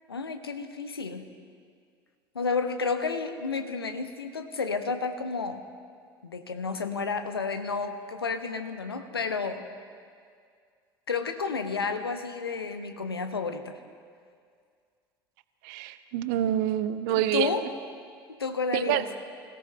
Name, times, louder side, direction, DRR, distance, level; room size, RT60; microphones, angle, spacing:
voice 1, 0.1-1.3 2.3-5.6 6.2-9.7 11.1-13.7 17.1-17.7 18.4-19.1, left 4 dB, 80° left, 8 dB, 1.0 m, -31 dB
voice 2, 15.6-17.5 18.7-19.0, right 12 dB, 55° right, 13 dB, 0.7 m, -27 dB
25.5 x 17.0 x 3.3 m, 2.1 s
figure-of-eight pair, 70°, 13 cm